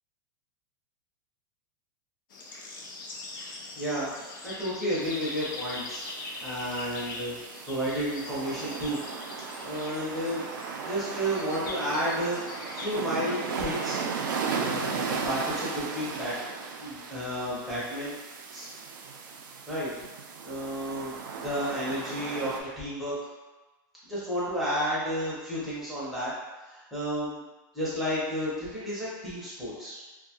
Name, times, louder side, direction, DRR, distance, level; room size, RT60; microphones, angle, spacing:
sound 1, 2.3-12.9, left 2 dB, 80° left, 0.5 m, -42 dB
voice 1, 3.8-4.1 4.4-6.0 6.4-7.3 7.6-9.0 9.4-10.4 10.8-12.4 12.7-14.0 14.5-16.3 16.8-18.1 18.5-18.7 19.7-19.9 20.4-23.1 24.1-26.3 26.7-27.4 27.7-30.0, equal, ahead, -10 dB, 0.6 m, -32 dB
sound 2, 5.0-22.6, right 5 dB, 85° right, 0.4 m, -36 dB
2.6 x 2.2 x 2.7 m, 1.2 s
supercardioid pair, 175°, 11 cm